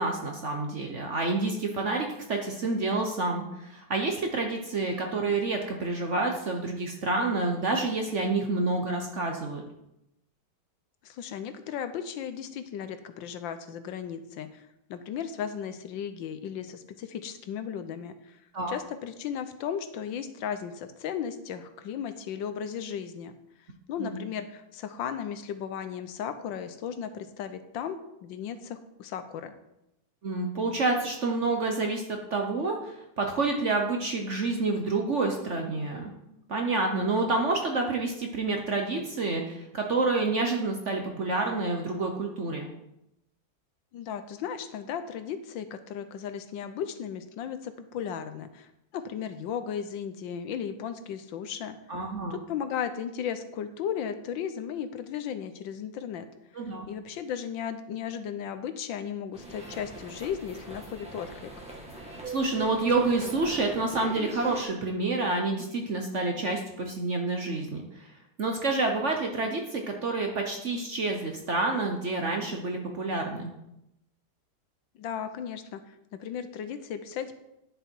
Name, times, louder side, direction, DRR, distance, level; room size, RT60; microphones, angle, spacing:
voice 1, 0.0-9.6 18.5-18.7 24.0-24.2 30.2-36.1 36.5-42.7 51.9-52.4 56.5-56.9 62.3-68.1 68.4-73.5, right 3 dB, 50° right, 3 dB, 1.0 m, -28 dB
voice 2, 11.0-18.4 18.7-23.3 23.9-29.5 43.9-51.8 52.3-56.3 56.9-61.5 75.0-77.4, left 8 dB, 75° left, 10 dB, 1.4 m, -35 dB
sound 1, 59.3-64.6, right 2 dB, 5° right, 1.6 m, -41 dB
10.5 x 6.9 x 4.5 m, 0.84 s
omnidirectional pair, 2.2 m